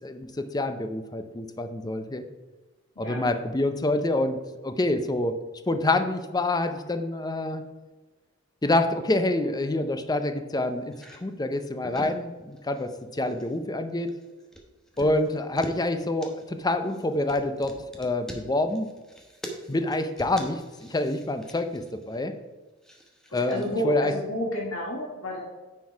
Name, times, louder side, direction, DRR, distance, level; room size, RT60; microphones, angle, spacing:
voice 1, 0.0-2.2 3.0-5.3 5.7-7.6 8.6-10.9 11.2-14.1 15.0-18.9 19.7-22.3 23.3-24.1, left 2 dB, 20° left, 8 dB, 0.6 m, -27 dB
sound 1, 10.9-11.2 11.7-12.3 12.5-12.9 13.2-13.6 13.9-15.9 16.2-22.2 22.8-23.7, equal, 5° left, 1.0 m, -43 dB
voice 2, 23.3-25.4, left 1 dB, 80° left, -2 dB, 1.6 m, -30 dB
9.4 x 4.6 x 4.7 m, 1.2 s
head